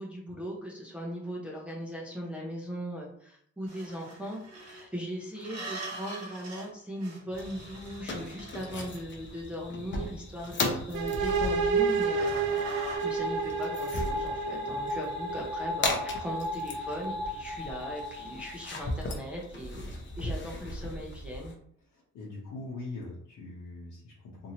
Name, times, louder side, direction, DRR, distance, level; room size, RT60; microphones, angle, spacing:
voice 1, 0.0-12.5 13.0-19.8 20.2-21.5, equal, 5° right, -4 dB, 0.6 m, -39 dB
sound 1, 3.7-4.8 5.4-6.7 6.9-9.4 10.4-13.0, right 2 dB, 55° right, 1.2 m, -44 dB
sound 2, 7.3-21.5, left 2 dB, 40° left, 0.7 m, -37 dB
sound 3, 10.9-18.6, right 3 dB, 90° right, 0.5 m, -31 dB
voice 2, 21.9-24.5, left 2 dB, 75° left, -6 dB, 0.9 m, -42 dB
2.8 x 2.7 x 2.8 m, 0.67 s
cardioid pair, 90°, 30 cm